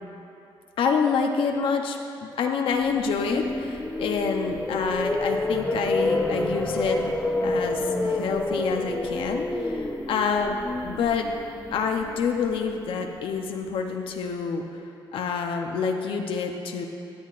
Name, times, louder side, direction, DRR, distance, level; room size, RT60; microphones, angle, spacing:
voice 1, 0.8-7.0 7.4-10.6 10.8-11.3 11.7-14.7 15.1-16.9, left 5 dB, 75° left, 3 dB, 0.8 m, -27 dB
sound 1, 2.9-13.0, left 2 dB, 10° left, 0.7 m, -29 dB
16.5 x 10.5 x 2.5 m, 2.7 s
cardioid pair, 120°, 9 cm